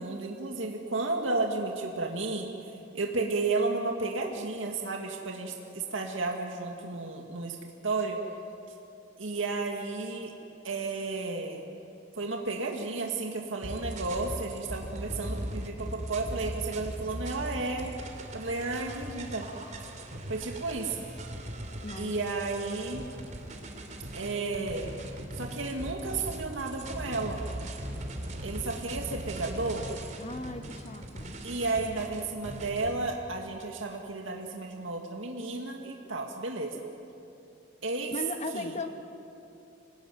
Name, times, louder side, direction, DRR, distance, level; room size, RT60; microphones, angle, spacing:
voice 1, 0.0-2.5 2.9-8.2 9.2-10.3 10.6-11.6 12.2-17.9 18.3-19.5 20.3-21.1 22.0-23.1 24.1-24.9 25.3-27.4 28.4-29.9 31.4-36.8 37.8-38.1 38.5-38.7, right 3 dB, 85° right, 2 dB, 2.0 m, -33 dB
sound 1, 13.6-32.9, right 1 dB, 40° right, 3.1 m, -39 dB
voice 2, 21.8-22.1 30.2-31.4 38.1-38.9, left 2 dB, 35° left, 6 dB, 1.3 m, -37 dB
26.5 x 19.5 x 9.3 m, 2.8 s
head